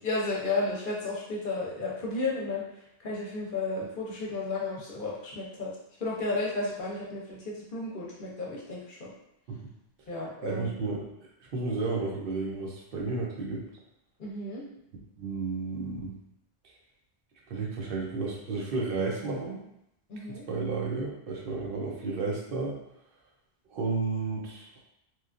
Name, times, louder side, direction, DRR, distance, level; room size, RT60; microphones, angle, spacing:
voice 1, 0.0-2.6 3.0-5.7 6.0-9.1 10.1-10.7 14.2-14.6 20.1-20.4, left 3 dB, 55° left, -4 dB, 0.8 m, -33 dB
voice 2, 10.4-11.1 11.4-13.6 15.2-16.1 17.5-19.6 20.3-22.8 23.7-24.8, right 3 dB, 60° right, -2 dB, 0.7 m, -32 dB
2.9 x 2.3 x 2.4 m, 0.82 s
omnidirectional pair, 1.1 m